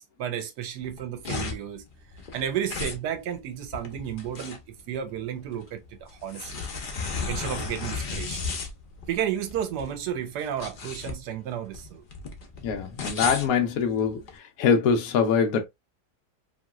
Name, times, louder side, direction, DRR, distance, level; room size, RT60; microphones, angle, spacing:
voice 1, 0.0-1.8 2.3-6.7 7.3-8.4 9.1-12.0, right 9 dB, 80° right, 1.2 m, -32 dB
sound 1, 0.8-14.3, left 4 dB, 85° left, 0.4 m, -35 dB
voice 2, 12.6-15.7, left 6 dB, 65° left, 0.9 m, -24 dB
3.0 x 2.8 x 2.3 m
omnidirectional pair, 1.8 m